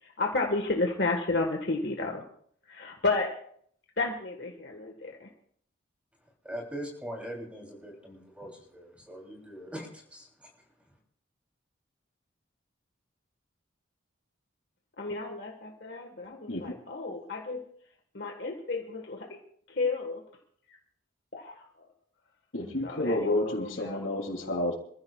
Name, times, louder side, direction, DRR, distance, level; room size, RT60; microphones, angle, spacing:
voice 1, 0.0-2.2 2.7-3.4 4.0-5.3 15.0-17.6 18.1-19.4 19.7-20.2 21.3-21.9 22.8-24.1, left 3 dB, 55° left, 2 dB, 1.5 m, -32 dB
voice 2, 6.4-10.5, equal, 5° right, -1 dB, 3.2 m, -41 dB
voice 3, 22.5-24.7, left 1 dB, 80° left, 2 dB, 3.0 m, -30 dB
27.0 x 15.0 x 2.4 m, 0.62 s
head